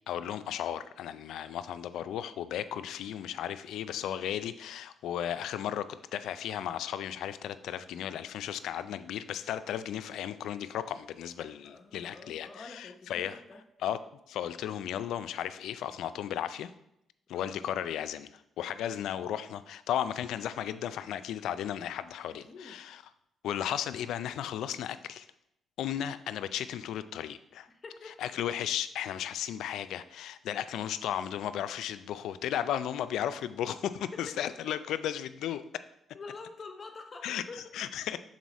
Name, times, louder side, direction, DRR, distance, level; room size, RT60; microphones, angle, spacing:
voice 1, 0.1-13.4 13.8-14.0 14.3-16.7 17.3-23.0 23.4-25.3 25.8-27.7 28.2-35.6 37.2-37.4 37.7-38.2, left 10 dB, 80° left, 12 dB, 0.3 m, -35 dB
voice 2, 11.6-13.6 17.3-17.5 22.3-22.8 27.7-28.2 34.2-34.3 36.1-37.6, left 3 dB, 35° left, 4 dB, 0.8 m, -47 dB
6.2 x 4.1 x 4.1 m, 0.80 s
cardioid pair, 90°, 0 cm